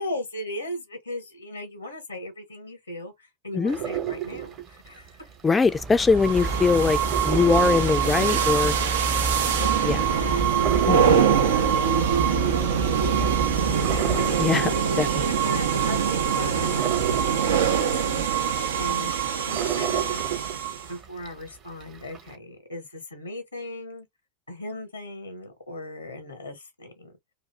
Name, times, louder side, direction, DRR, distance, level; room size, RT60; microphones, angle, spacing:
voice 1, 0.0-5.3 9.0-10.5 11.1-14.5 15.2-18.3 18.8-20.3 20.9-24.1 24.5-27.1, left 1 dB, 80° left, 0.9 m, -38 dB
coffemachine brewing - actions, 3.7-5.9 6.3-21.4 21.8-22.3, right 10 dB, 35° right, 1.0 m, -33 dB
voice 2, 5.4-8.7 9.8-10.0 10.9-11.5 14.4-14.7 15.0-15.3, left 4 dB, 15° left, 0.4 m, -22 dB
sound 1, 5.6-14.5, right 2 dB, 15° right, 0.7 m, -31 dB
sound 2, 6.2-20.9, right 8 dB, 65° right, 0.6 m, -24 dB
2.6 x 2.5 x 3.2 m
figure-of-eight pair, 85°, 0 cm